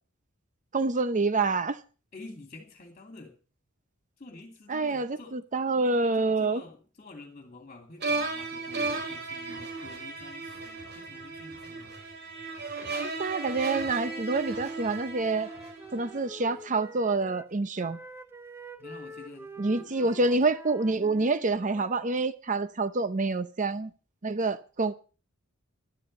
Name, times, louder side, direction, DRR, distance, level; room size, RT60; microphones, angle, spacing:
voice 1, 0.7-1.8 4.7-6.6 13.0-15.5 15.9-18.0 19.6-23.9 24.2-24.9, right 3 dB, 35° right, 0.7 m, -27 dB
voice 2, 2.1-3.3 4.2-5.3 6.1-11.9 18.8-20.2, left 2 dB, 35° left, 2.6 m, -48 dB
sound 1, 8.0-16.2, right 3 dB, 50° right, 4.8 m, -35 dB
Wind instrument woodwind instrument, 13.8-17.5 17.8-22.2, right 1 dB, 10° right, 1.2 m, -47 dB
12.0 x 12.0 x 5.4 m
head